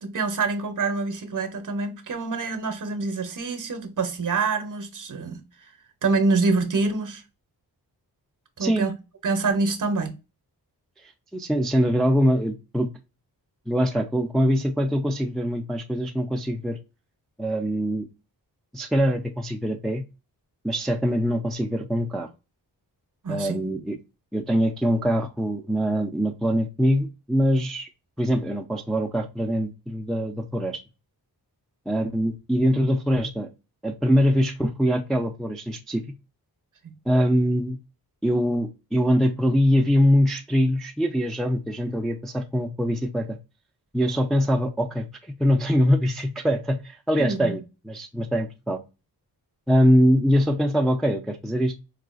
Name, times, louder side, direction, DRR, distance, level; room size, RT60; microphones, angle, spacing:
voice 1, 0.0-5.4 6.0-7.2 8.6-8.9 9.2-10.1 23.2-23.6 36.8-36.9 47.2-47.5, right 4 dB, 50° right, 0.7 m, -26 dB
voice 2, 11.0-12.9 13.7-16.8 17.4-18.1 18.7-20.0 20.6-22.3 23.3-24.0 24.3-27.9 28.2-30.8 31.9-33.5 33.8-36.0 37.1-37.8 38.2-43.4 43.9-45.1 45.4-48.8 49.7-51.7, equal, ahead, 0.3 m, -23 dB
4.8 x 2.3 x 2.3 m
wide cardioid pair, 95°, 39 cm